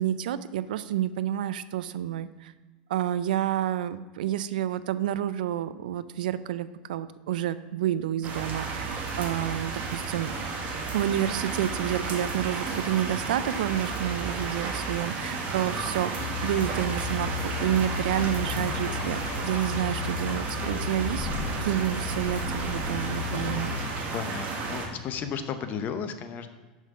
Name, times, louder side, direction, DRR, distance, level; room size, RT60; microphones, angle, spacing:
voice 1, 0.0-2.5 2.9-8.9 9.2-10.3 10.9-21.3 21.6-23.7, right 11 dB, 75° right, 14 dB, 0.4 m, -29 dB
sound 1, 8.2-24.9, right 4 dB, 40° right, 1.5 m, -32 dB
sound 2, 16.2-23.9, left 7 dB, 60° left, 0.4 m, -35 dB
voice 2, 18.4-19.2 23.9-26.5, left 7 dB, 40° left, 9 dB, 0.8 m, -35 dB
6.3 x 5.3 x 5.2 m, 1.3 s
hypercardioid pair, 100°, 5 cm